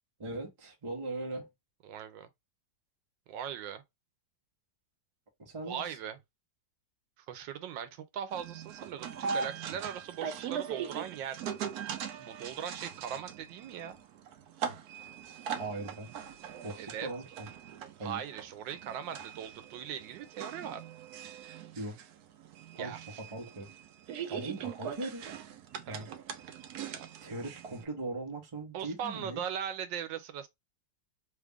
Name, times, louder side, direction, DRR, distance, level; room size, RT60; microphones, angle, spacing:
voice 1, 0.2-1.5 5.4-5.8 15.6-16.1 16.6-17.5 18.0-18.2 21.7-22.0 22.7-23.7 24.3-25.2 25.9-26.1 27.2-29.4, right 2 dB, 25° right, 0.8 m, -39 dB
voice 2, 1.8-2.3 3.3-3.8 5.7-6.2 7.3-11.4 12.2-14.0 16.8-17.1 18.0-20.8 22.8-23.2 24.6-24.7 25.9-26.0 26.9-27.1 28.7-30.5, right 8 dB, 85° right, 1.4 m, -39 dB
sound 1, 8.3-27.8, right 7 dB, 70° right, 0.9 m, -41 dB
3.3 x 2.4 x 3.4 m
omnidirectional pair, 2.0 m